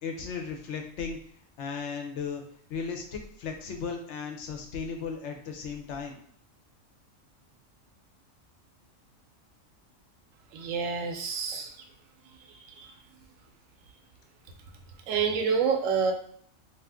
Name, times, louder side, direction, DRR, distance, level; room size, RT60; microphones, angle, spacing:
voice 1, 0.0-1.2 1.6-2.4 2.7-6.2, left 5 dB, 65° left, 3 dB, 0.8 m, -36 dB
voice 2, 10.5-11.8 12.5-13.0 15.1-16.1, right 6 dB, 75° right, 4 dB, 0.9 m, -28 dB
2.5 x 2.4 x 3.4 m, 0.62 s
omnidirectional pair, 1.4 m